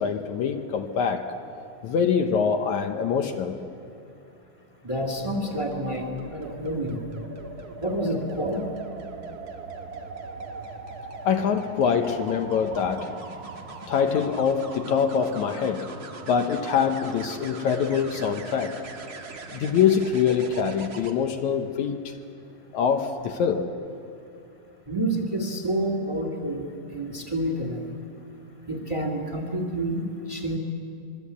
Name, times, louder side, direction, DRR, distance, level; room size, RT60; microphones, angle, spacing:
voice 1, 0.0-1.4 1.8-3.6 11.3-13.2 13.9-15.9 16.3-18.8 19.5-22.2 22.7-23.7, left 7 dB, 70° left, 5 dB, 2.2 m, -24 dB
voice 2, 4.8-7.0 7.8-8.6 24.9-26.7 26.9-27.9 28.7-30.6, right 1 dB, 10° right, 1 dB, 2.3 m, -28 dB
sound 1, 5.0-21.1 23.0-23.3, right 3 dB, 40° right, 1.5 m, -40 dB
25.0 x 23.0 x 8.5 m, 2.6 s
omnidirectional pair, 3.7 m